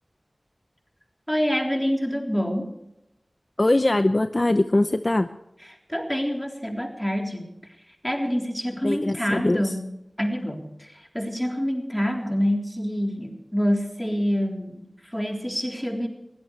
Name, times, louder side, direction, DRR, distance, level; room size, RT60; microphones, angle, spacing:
voice 1, 1.3-2.7 5.9-7.5 8.0-9.9 10.2-16.1, equal, 5° left, 2 dB, 3.7 m, -26 dB
voice 2, 3.6-5.3 8.8-9.7, left 2 dB, 45° left, 10 dB, 0.7 m, -22 dB
22.0 x 16.0 x 3.3 m, 0.87 s
wide cardioid pair, 45°, 0 cm